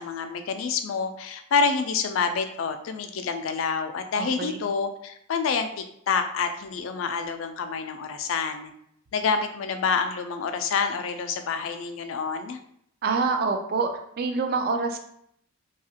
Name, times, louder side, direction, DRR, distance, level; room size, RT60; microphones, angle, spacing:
voice 1, 0.0-8.7 9.1-12.6, left 5 dB, 90° left, 7 dB, 0.4 m, -27 dB
voice 2, 4.2-4.6 13.0-13.9 14.2-15.0, right 4 dB, 50° right, 5 dB, 0.3 m, -26 dB
2.8 x 2.4 x 2.7 m, 0.70 s
head